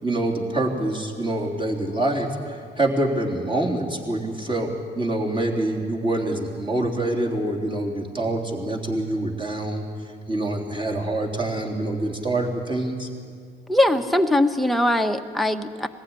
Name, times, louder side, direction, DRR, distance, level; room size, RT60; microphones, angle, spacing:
voice 1, 0.0-9.8 10.3-13.1, right 1 dB, 25° right, -1 dB, 3.5 m, -26 dB
voice 2, 13.7-15.9, left 1 dB, ahead, 5 dB, 1.1 m, -21 dB
21.0 x 15.5 x 9.6 m, 2.1 s
cardioid pair, 90°, 20 cm